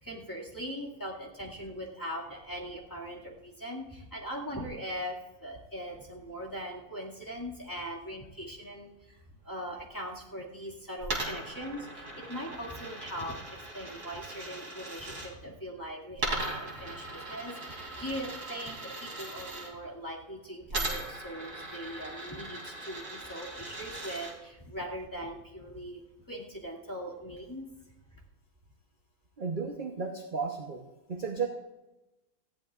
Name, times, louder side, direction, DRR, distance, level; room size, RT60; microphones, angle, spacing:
voice 1, 0.0-26.0 26.3-27.7, equal, 10° left, -4 dB, 2.3 m, -40 dB
Coin (dropping), 11.0-15.3 16.2-19.7 20.7-24.3, right 2 dB, 50° right, 3.4 m, -39 dB
voice 2, 29.4-30.8 31.1-31.5, right 5 dB, 35° right, 1 dB, 1.0 m, -33 dB
19.5 x 15.0 x 2.5 m, 1.0 s
omnidirectional pair, 1.8 m